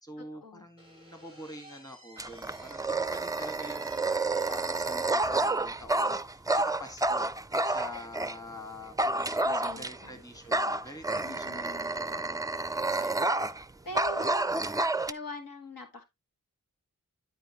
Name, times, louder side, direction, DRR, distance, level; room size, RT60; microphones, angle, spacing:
voice 1, 0.0-7.3 7.6-13.3, left 1 dB, 10° left, 6 dB, 1.7 m, -46 dB
Slam / Squeak, 0.8-5.7, equal, 40° left, 4.2 m, -53 dB
Dog, 2.2-8.4 9.0-10.1 10.5-13.6 13.9-15.1, right 2 dB, 10° right, 0.4 m, -29 dB
voice 2, 9.4-10.2 11.2-11.9 13.9-14.5 15.1-16.0, left 1 dB, 80° left, 3 dB, 2.1 m, -42 dB
12.5 x 4.3 x 3.0 m, 0.21 s
cardioid pair, 45°, 34 cm